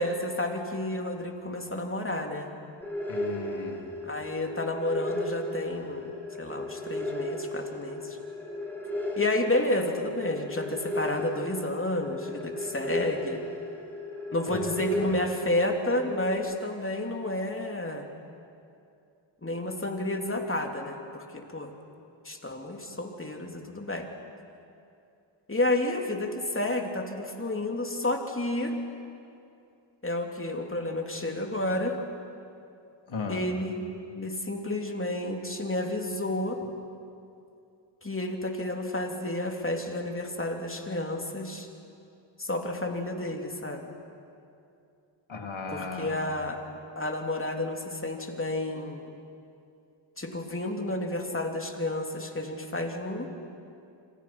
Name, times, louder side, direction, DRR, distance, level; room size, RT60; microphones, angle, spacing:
voice 1, 0.0-2.5 4.0-6.1 6.4-8.2 9.2-13.4 14.3-18.1 19.4-21.7 22.2-24.1 25.5-28.7 30.0-32.0 33.3-33.8 34.1-36.6 38.0-41.7 42.4-44.0 45.7-46.6 46.9-49.2 50.2-53.3, left 1 dB, 25° left, 2 dB, 3.2 m, -31 dB
sound 1, 2.8-16.4, left 1 dB, 5° left, 7.5 m, -35 dB
voice 2, 3.1-3.9 14.5-14.7 15.0-15.1 33.1-33.4 45.3-46.3, left 4 dB, 70° left, 2 dB, 3.2 m, -36 dB
27.0 x 26.0 x 6.1 m, 2.6 s
cardioid pair, 60°, 49 cm